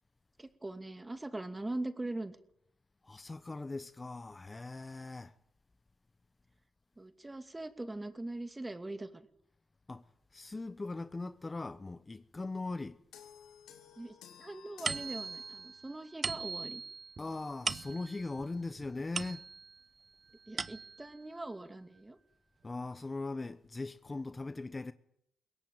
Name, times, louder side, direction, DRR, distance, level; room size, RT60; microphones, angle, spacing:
voice 1, 0.4-2.4 7.0-9.3 14.0-16.8 20.5-22.2, right 2 dB, 20° right, 2.7 m, -41 dB
voice 2, 3.0-5.3 9.9-10.0 10.3-13.0 17.2-19.4 22.6-24.9, left 3 dB, 30° left, 1.0 m, -40 dB
sound 1, 13.1-16.0, left 9 dB, 85° left, 2.7 m, -55 dB
sound 2, 14.8-19.8 20.3-21.2, right 5 dB, 50° right, 0.9 m, -40 dB
22.5 x 17.5 x 9.1 m
supercardioid pair, 45°, 0 cm